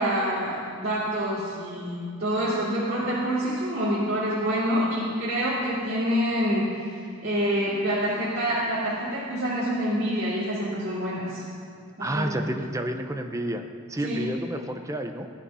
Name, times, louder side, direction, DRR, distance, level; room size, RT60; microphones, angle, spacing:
voice 1, 0.0-11.4 12.0-12.5 14.0-14.3, equal, 50° right, -10 dB, 2.8 m, -27 dB
voice 2, 12.0-15.3, right 1 dB, 15° right, 5 dB, 0.7 m, -30 dB
16.5 x 10.0 x 5.6 m, 2.3 s
head